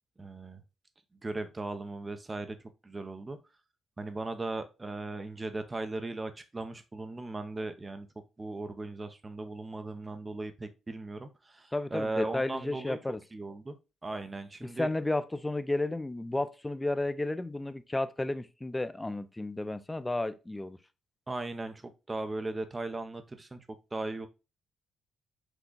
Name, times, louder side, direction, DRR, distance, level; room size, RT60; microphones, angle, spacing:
voice 1, 0.2-0.6 1.2-2.6 2.8-3.4 4.0-8.1 8.4-13.0 13.3-13.8 14.0-14.9 21.3-23.6 23.9-24.3, right 2 dB, 20° right, 0.7 m, -37 dB
voice 2, 11.7-13.2 14.6-20.8, left 2 dB, 15° left, 0.4 m, -32 dB
6.1 x 2.3 x 3.8 m
cardioid pair, 90°, 0 cm